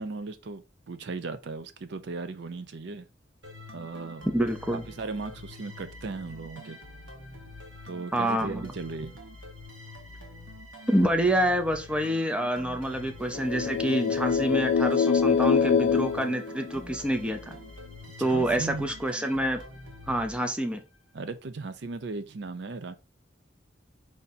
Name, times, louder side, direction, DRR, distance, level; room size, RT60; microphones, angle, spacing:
voice 1, 0.0-3.1 3.7-4.3 4.7-6.8 7.9-9.2 18.2-18.9 21.1-22.9, right 3 dB, 60° right, 0.5 m, -37 dB
sound 1, 3.4-21.0, left 1 dB, 75° right, 1.4 m, -46 dB
voice 2, 4.3-4.8 8.1-8.6 10.9-17.6 18.2-19.6 20.1-20.8, right 1 dB, 5° right, 0.5 m, -27 dB
sound 2, 13.3-17.2, left 6 dB, 65° left, 0.3 m, -25 dB
4.8 x 2.7 x 4.0 m
head